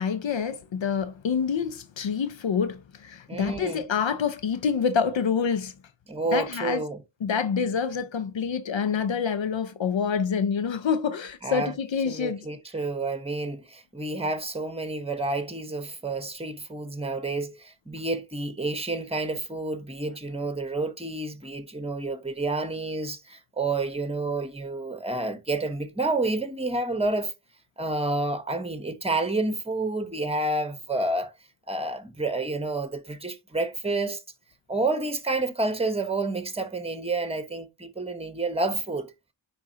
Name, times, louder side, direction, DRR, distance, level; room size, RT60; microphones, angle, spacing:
voice 1, 0.0-5.7 6.3-6.8 7.2-12.5, left 6 dB, 70° left, 0.6 m, -27 dB
voice 2, 3.3-3.8 6.1-7.0 11.4-11.7 12.0-27.3 27.8-31.3 31.7-34.2 34.7-39.1, right 2 dB, 15° right, 1.1 m, -29 dB
9.6 x 4.1 x 2.8 m
wide cardioid pair, 70°, 46 cm